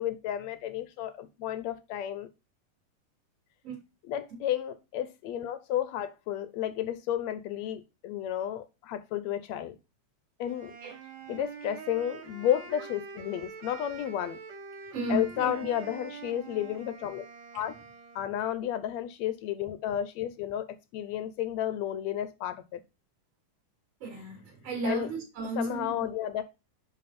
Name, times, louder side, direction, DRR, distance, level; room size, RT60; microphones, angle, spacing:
voice 1, 0.0-2.3 4.1-9.8 10.4-10.8 11.3-14.4 15.1-17.2 17.5-17.8 18.2-20.7 20.9-22.8 24.8-25.1 25.6-26.4, left 11 dB, 70° left, 1.8 m, -32 dB
Wind instrument woodwind instrument, 10.5-18.4, right 5 dB, 75° right, 3.0 m, -46 dB
voice 2, 14.9-15.7 24.0-26.0, right 3 dB, 50° right, 4.1 m, -34 dB
10.5 x 3.9 x 4.3 m
omnidirectional pair, 3.7 m